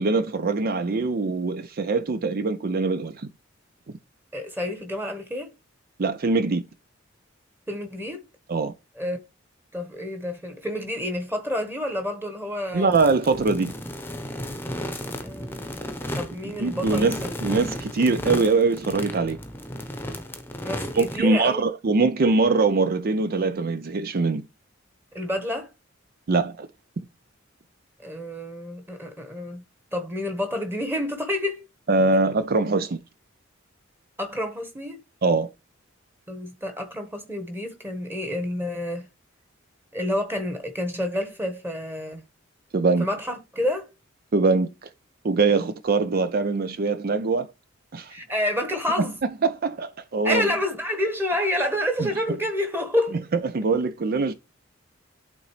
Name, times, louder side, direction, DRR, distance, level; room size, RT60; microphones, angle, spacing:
voice 1, 0.0-3.3 6.0-6.6 8.5-8.7 12.7-13.7 16.4-19.4 20.9-24.4 26.3-26.7 31.9-33.0 35.2-35.5 42.7-43.1 44.3-44.9 45.2-47.5 47.9-48.1 49.0-49.1 49.4-50.5 52.0-52.1 53.3-54.3, right 3 dB, 45° right, 0.5 m, -23 dB
voice 2, 4.3-5.5 7.7-8.2 9.0-9.2 9.7-12.9 15.0-15.9 16.1-17.4 20.6-21.6 25.1-25.7 28.0-29.6 29.9-31.6 34.2-35.0 36.3-39.1 39.9-42.2 43.0-43.9 48.1-49.2 50.2-53.2, left 1 dB, 10° right, 1.3 m, -29 dB
sound 1, 12.9-21.2, equal, 10° left, 0.9 m, -34 dB
11.5 x 3.9 x 3.3 m
head